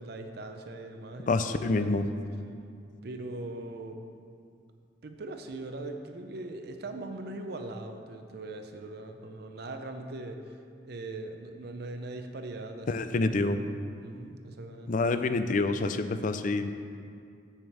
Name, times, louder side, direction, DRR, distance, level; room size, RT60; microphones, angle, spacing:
voice 1, 0.0-2.0 3.0-4.0 5.0-10.6 10.8-15.0, right 2 dB, 60° right, 5 dB, 0.6 m, -41 dB
voice 2, 1.3-2.0 12.9-13.6 14.9-16.7, left 3 dB, 45° left, 10 dB, 0.4 m, -27 dB
7.3 x 5.1 x 7.2 m, 2.4 s
head